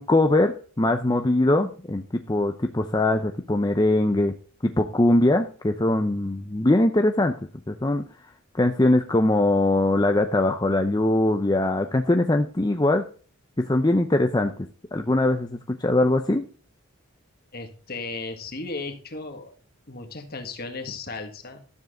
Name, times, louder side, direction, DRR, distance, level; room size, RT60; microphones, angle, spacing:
voice 1, 0.0-4.3 4.6-7.3 7.7-8.0 8.5-13.0 13.6-14.5 14.9-16.5, left 1 dB, 20° left, 5 dB, 0.6 m, -21 dB
voice 2, 17.5-19.5 19.9-21.6, left 3 dB, 45° left, 6 dB, 1.8 m, -35 dB
12.5 x 7.4 x 3.7 m, 0.40 s
head